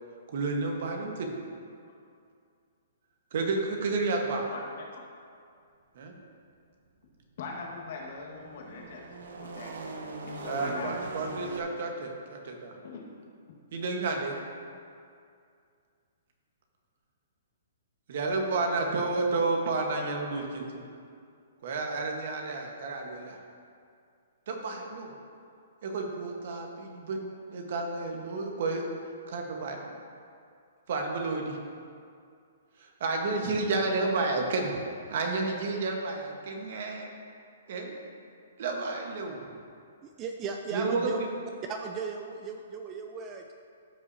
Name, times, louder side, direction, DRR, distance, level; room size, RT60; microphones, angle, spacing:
voice 1, 0.3-1.3 3.3-4.5 5.9-6.1 10.4-12.7 13.7-14.4 18.1-20.7 21.6-23.4 24.5-25.1 25.8-27.2 27.5-28.9 29.3-29.9 30.9-31.6 32.8-34.7 35.1-37.1 37.7-37.9 38.6-39.3 40.7-41.3, right 3 dB, 60° right, 2 dB, 1.3 m, -31 dB
voice 2, 4.5-5.0 7.4-9.1 9.4-9.7 10.2-11.2 12.8-13.0, left 4 dB, 55° left, -1 dB, 1.7 m, -41 dB
sound 1, 7.8-11.6, right 3 dB, 80° right, 0.9 m, -41 dB
voice 3, 40.0-41.2 41.7-43.5, right 5 dB, 25° right, 4 dB, 0.5 m, -36 dB
13.5 x 5.5 x 2.8 m, 2.3 s
hypercardioid pair, 145°, 0 cm